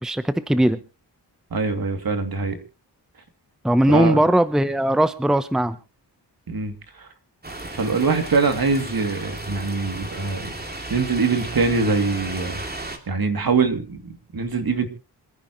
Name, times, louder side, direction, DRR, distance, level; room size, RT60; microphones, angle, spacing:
voice 1, 0.0-0.8 3.6-5.8, right 1 dB, ahead, 12 dB, 0.9 m, -19 dB
voice 2, 1.5-2.6 3.9-4.2 6.5-7.1 7.7-10.4 10.9-12.6 13.1-14.9, right 4 dB, 55° right, 6 dB, 2.8 m, -23 dB
sound 1, 7.4-13.0, right 1 dB, 20° right, 2.9 m, -34 dB
27.0 x 10.0 x 3.1 m, 0.32 s
cardioid pair, 75°, 42 cm